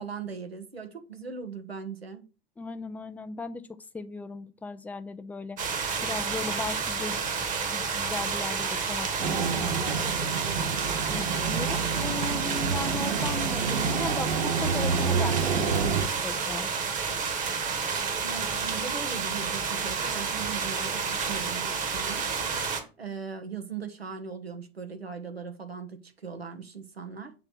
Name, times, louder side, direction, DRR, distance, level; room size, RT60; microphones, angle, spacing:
voice 1, 0.0-2.3 12.8-13.2 18.2-22.3 23.0-27.3, right 6 dB, 85° right, 1.2 m, -39 dB
voice 2, 2.6-3.7 3.9-5.6 6.0-7.2 7.7-10.4 11.1-16.7, left 4 dB, 5° left, 0.4 m, -37 dB
sound 1, 5.6-22.8, right 5 dB, 25° right, 1.3 m, -30 dB
sound 2, 9.2-16.1, right 5 dB, 60° right, 1.0 m, -29 dB
7.4 x 3.2 x 5.9 m
figure-of-eight pair, 90°, 30 cm